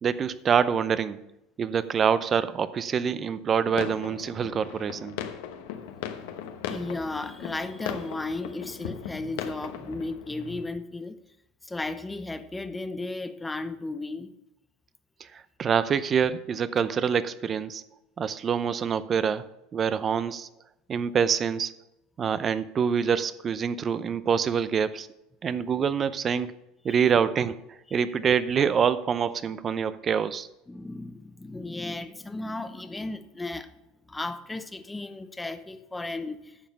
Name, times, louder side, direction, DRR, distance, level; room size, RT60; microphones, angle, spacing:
voice 1, 0.0-1.2 1.6-5.2 15.3-17.8 18.2-19.5 19.7-20.5 20.9-21.7 22.2-25.1 25.4-26.5 26.8-27.6 27.9-30.5, right 7 dB, 35° right, 15 dB, 0.6 m, -25 dB
sound 1, 3.7-10.7, left 9 dB, 80° left, 1.0 m, -38 dB
voice 2, 6.7-11.2 11.6-14.3 26.9-27.1 27.9-28.0 30.7-33.7 34.1-36.6, left 2 dB, 10° left, 11 dB, 0.8 m, -35 dB
10.5 x 7.2 x 5.5 m, 0.88 s
supercardioid pair, 95°, 0 cm